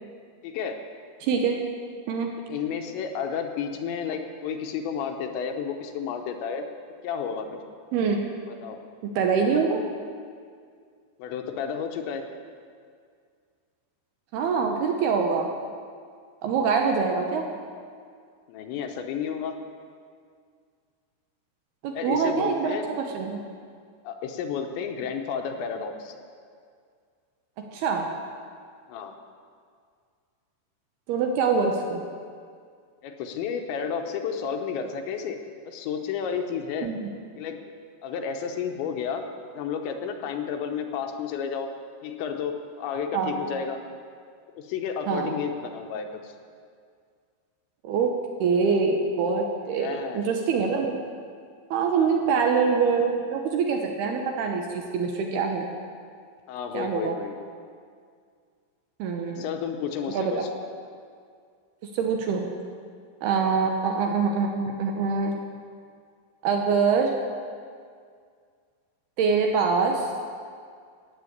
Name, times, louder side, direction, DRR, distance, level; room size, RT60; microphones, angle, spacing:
voice 1, 0.4-0.8 2.5-6.6 7.0-7.6 8.5-8.8 11.2-12.3 18.5-19.6 21.9-22.9 24.0-26.1 28.9-29.2 31.8-31.9 33.0-35.4 35.7-36.9 37.4-37.6 38.0-39.3 39.6-41.7 42.0-43.8 44.5-46.3 49.8-50.3 51.9-52.2 56.5-57.4 59.4-60.5 63.4-63.6, left 7 dB, 80° left, 5 dB, 3.2 m, -31 dB
voice 2, 1.2-1.6 2.1-2.3 7.9-8.3 9.0-9.8 14.3-15.5 16.4-17.5 21.8-23.4 27.6-28.1 31.1-32.0 36.8-37.1 43.1-43.4 45.1-45.3 47.8-48.1 48.4-51.0 51.7-55.7 56.7-57.2 59.0-59.4 60.1-60.4 61.8-62.5 63.2-65.4 66.4-67.1 69.2-70.1, right 5 dB, 75° right, 2 dB, 2.6 m, -24 dB
14.5 x 9.3 x 8.1 m, 2.1 s
omnidirectional pair, 5.4 m